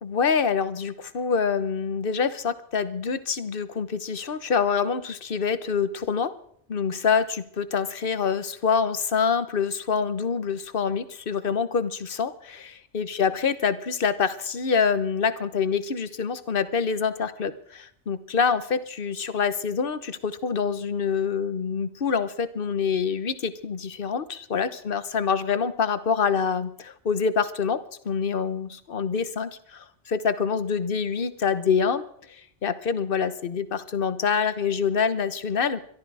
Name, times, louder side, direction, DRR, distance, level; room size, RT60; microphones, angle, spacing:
voice 1, 0.0-6.3 6.7-32.0 32.3-35.8, left 6 dB, 50° left, 13 dB, 1.2 m, -26 dB
22.5 x 13.0 x 4.8 m, 0.67 s
omnidirectional pair, 1.2 m